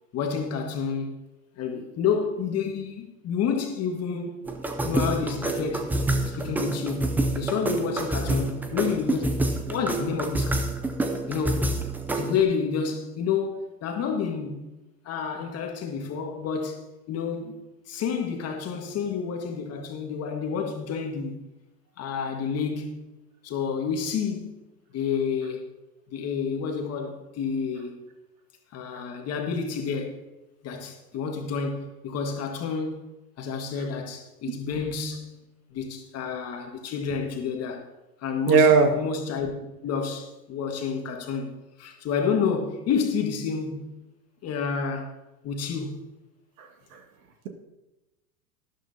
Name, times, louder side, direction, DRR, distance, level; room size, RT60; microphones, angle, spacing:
voice 1, 0.1-1.1 1.6-4.3 4.8-10.7 11.3-11.8 12.1-14.6 15.0-16.8 17.1-17.6 17.9-21.4 22.0-23.1 23.4-24.5 24.9-25.7 26.1-28.0 28.7-30.2 30.6-33.0 33.4-35.4 35.7-37.9 38.2-39.6 39.8-44.0 44.4-45.1 45.4-46.0, left 6 dB, 30° left, 1.6 m, -29 dB
sound 1, 4.5-12.4, right 2 dB, 5° right, 0.4 m, -27 dB
voice 2, 38.5-38.9 46.6-47.0, right 6 dB, 60° right, 1.9 m, -19 dB
12.5 x 11.5 x 2.8 m
hypercardioid pair, 105°, 48 cm